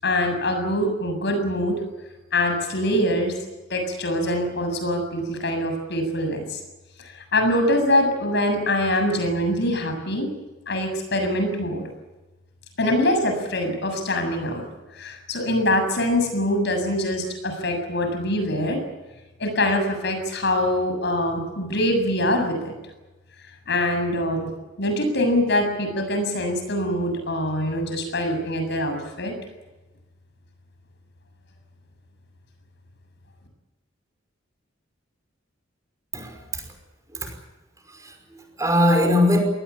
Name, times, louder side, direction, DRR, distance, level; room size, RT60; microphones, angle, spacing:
voice 1, 0.0-1.8 2.3-3.3 3.7-6.6 7.0-10.3 10.7-11.9 12.8-14.6 15.0-18.8 19.4-22.7 23.7-24.5 24.8-29.3, left 1 dB, 65° left, 6 dB, 7.3 m, -24 dB
voice 2, 36.1-36.6 37.1-37.3 37.9-39.4, left 1 dB, 15° right, 4 dB, 5.6 m, -21 dB
26.0 x 19.5 x 8.6 m, 1.1 s
head